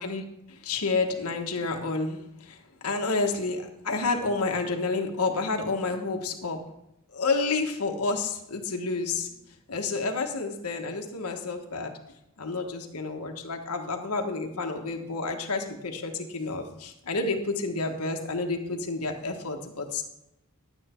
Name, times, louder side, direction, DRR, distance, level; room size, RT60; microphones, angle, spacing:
voice 1, 0.0-6.6 7.1-9.3 9.7-11.9 12.4-20.0, left 3 dB, 90° left, 3 dB, 1.4 m, -30 dB
11.0 x 9.2 x 4.4 m, 0.87 s
head